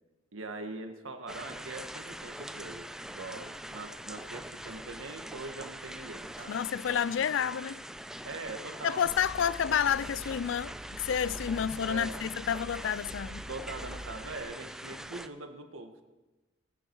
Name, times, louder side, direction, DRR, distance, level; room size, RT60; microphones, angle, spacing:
voice 1, 0.3-6.6 8.2-9.1 11.8-12.3 13.5-16.0, right 2 dB, 85° right, 1.6 m, -42 dB
sound 1, 1.3-15.3, right 1 dB, 5° right, 0.4 m, -43 dB
voice 2, 6.5-7.8 8.8-13.4, left 8 dB, 70° left, 0.3 m, -30 dB
sound 2, 9.0-14.4, equal, 30° right, 1.9 m, -46 dB
20.0 x 10.0 x 4.6 m
head